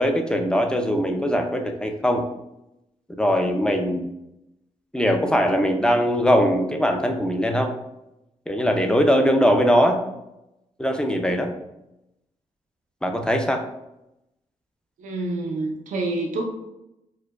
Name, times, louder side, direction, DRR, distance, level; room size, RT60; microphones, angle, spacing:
voice 1, 0.0-2.2 3.2-4.1 4.9-7.7 8.5-10.0 10.8-11.5 13.0-13.6, equal, 5° left, 4 dB, 0.4 m, -21 dB
voice 2, 15.0-16.5, right 2 dB, 85° right, 1 dB, 0.5 m, -27 dB
4.5 x 2.1 x 2.3 m, 0.89 s
cardioid pair, 70°, 13 cm